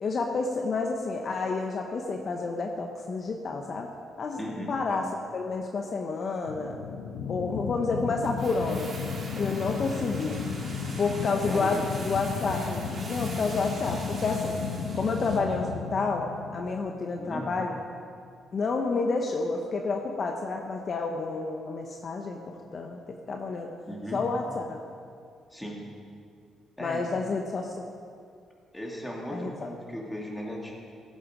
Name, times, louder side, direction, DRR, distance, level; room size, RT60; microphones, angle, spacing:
voice 1, 0.0-3.9 4.2-4.4 4.7-6.8 7.3-8.9 9.4-10.5 11.0-14.6 14.9-16.3 16.5-17.8 18.5-23.7 24.1-24.8 26.8-27.9 29.3-29.5, left 4 dB, 50° left, 3 dB, 0.9 m, -30 dB
voice 2, 4.4-4.7 11.4-11.8 17.2-17.5 23.9-24.2 25.5-25.8 26.8-27.0 28.7-30.7, equal, 10° left, -2 dB, 2.7 m, -36 dB
sound 1, 6.5-17.4, left 6 dB, 90° left, 0.8 m, -34 dB
sound 2, 8.2-15.5 15.8-15.9, right 2 dB, 45° right, 2.5 m, -43 dB
15.5 x 7.9 x 5.1 m, 2.3 s
cardioid pair, 90°, 0 cm